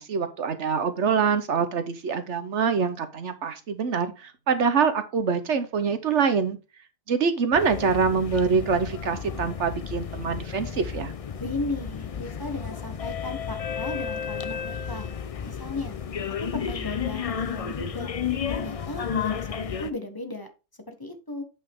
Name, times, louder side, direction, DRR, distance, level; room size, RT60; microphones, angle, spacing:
voice 1, 0.0-6.6 7.1-11.1, right 5 dB, 65° right, 10 dB, 1.3 m, -25 dB
sound 1, 7.5-19.9, left 7 dB, 50° left, 0.4 m, -32 dB
voice 2, 11.4-15.1 15.4-16.0 16.5-18.1 18.5-20.5 20.9-21.4, left 2 dB, 20° left, 5 dB, 1.3 m, -35 dB
8.5 x 5.5 x 3.6 m, 0.30 s
omnidirectional pair, 1.3 m